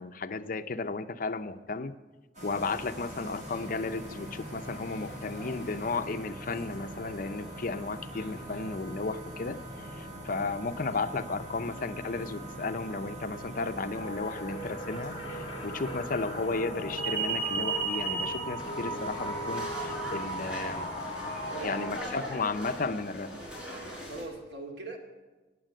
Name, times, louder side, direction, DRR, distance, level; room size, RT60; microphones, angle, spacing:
voice 1, 0.0-2.0 2.4-9.6 10.0-20.9 21.6-23.3, left 3 dB, 50° left, 10 dB, 0.6 m, -34 dB
sound 1, 2.3-21.9, right 3 dB, 45° right, 6.7 m, -39 dB
sound 2, 13.9-22.0, equal, 35° left, 1.4 m, -38 dB
sound 3, 18.6-24.2, equal, 5° right, 5.1 m, -41 dB
voice 2, 21.5-22.2 24.0-25.0, right 3 dB, 65° right, 2 dB, 2.5 m, -41 dB
16.5 x 9.1 x 7.7 m, 1.2 s
head